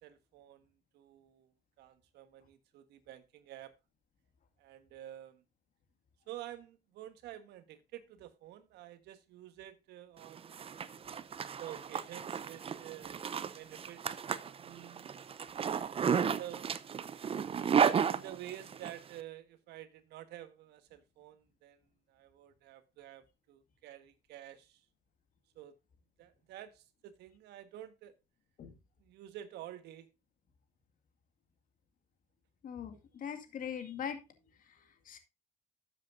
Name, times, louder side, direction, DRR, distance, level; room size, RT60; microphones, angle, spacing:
voice 1, 0.0-3.7 4.6-5.4 6.3-10.6 11.6-13.3 13.5-14.0 14.6-15.1 15.5-16.7 17.6-21.8 22.1-24.9 25.5-25.8 26.2-28.1 29.0-30.1, right 12 dB, 80° right, 1.4 m, -50 dB
Zipper (clothing), 10.2-18.9, right 7 dB, 35° right, 0.7 m, -33 dB
voice 2, 32.6-34.2 34.6-35.2, left 8 dB, 55° left, 2.3 m, -42 dB
13.0 x 7.7 x 2.6 m
cardioid pair, 110°, 17 cm